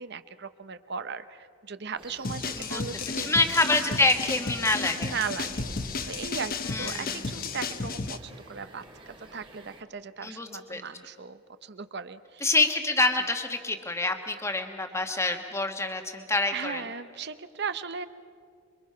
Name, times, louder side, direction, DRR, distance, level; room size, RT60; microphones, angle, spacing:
voice 1, 0.0-3.3 3.9-4.0 5.0-12.5 16.5-18.1, right 6 dB, 50° right, 12 dB, 0.8 m, -37 dB
sound 1, 2.0-9.8, right 1 dB, 25° right, 1.7 m, -47 dB
sound 2, 2.2-8.2, left 4 dB, 40° left, 1.0 m, -33 dB
voice 2, 3.2-5.1 6.7-7.1 10.2-10.8 12.4-16.8, left 2 dB, 10° left, 5 dB, 1.4 m, -26 dB
27.5 x 23.5 x 5.7 m, 2.4 s
head